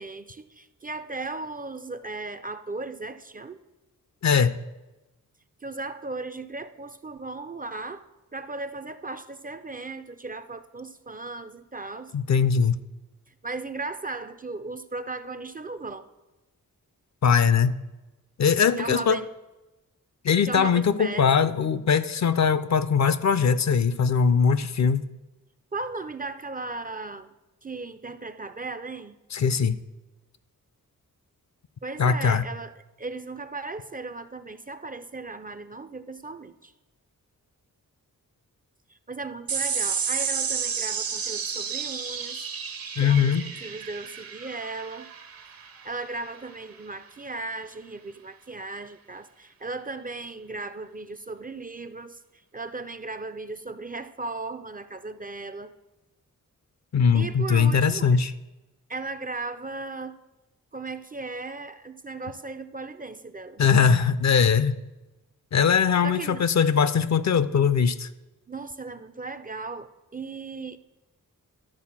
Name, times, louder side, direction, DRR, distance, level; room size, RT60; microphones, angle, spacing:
voice 1, 0.0-3.6 5.6-8.0 8.3-12.1 13.3-16.1 18.8-19.3 20.5-21.5 25.7-27.3 27.6-29.2 31.8-36.7 38.9-42.5 43.0-45.1 45.8-55.7 57.1-58.2 58.9-60.2 60.7-63.6 66.0-66.4 68.5-70.8, right 3 dB, 25° right, 11 dB, 0.4 m, -36 dB
voice 2, 4.2-4.6 12.1-12.8 17.2-17.7 18.4-19.2 20.2-25.0 29.3-29.8 32.0-32.4 43.0-43.4 56.9-58.3 63.6-64.8 65.5-68.1, left 6 dB, 55° left, 14 dB, 0.5 m, -21 dB
sound 1, 39.5-46.3, right 6 dB, 85° right, 1.5 m, -31 dB
12.0 x 4.1 x 7.2 m, 1.1 s
wide cardioid pair, 100°, 34 cm